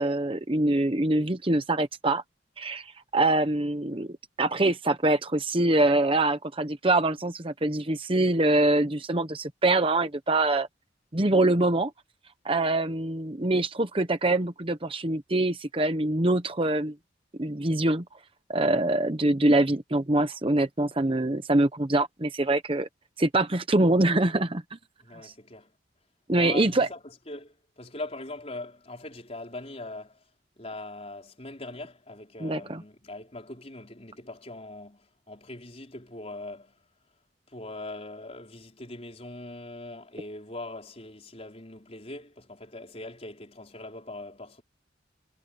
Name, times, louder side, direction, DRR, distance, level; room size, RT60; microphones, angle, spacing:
voice 1, 0.0-2.2 2.6-10.7 11.1-11.9 12.4-16.9 17.4-18.0 18.5-22.9 23.2-24.6 25.2-25.3 26.3-26.9 32.4-32.8, right 2 dB, 30° right, 1.0 m, -24 dB
voice 2, 25.0-25.7 26.3-30.2 30.6-36.8 37.5-44.6, left 2 dB, 35° left, 5.0 m, -41 dB
head